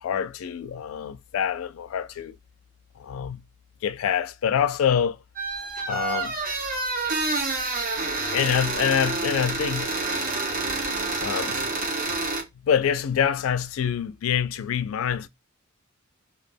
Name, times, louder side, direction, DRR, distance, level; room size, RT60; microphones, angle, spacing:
voice 1, 0.0-2.4 3.0-3.4 3.8-5.2 5.9-6.4 8.3-9.9 11.2-11.7 12.6-15.3, left 8 dB, 70° left, 0.3 m, -26 dB
sound 1, 5.4-12.4, right 3 dB, 40° right, 0.6 m, -28 dB
2.2 x 2.1 x 3.3 m
head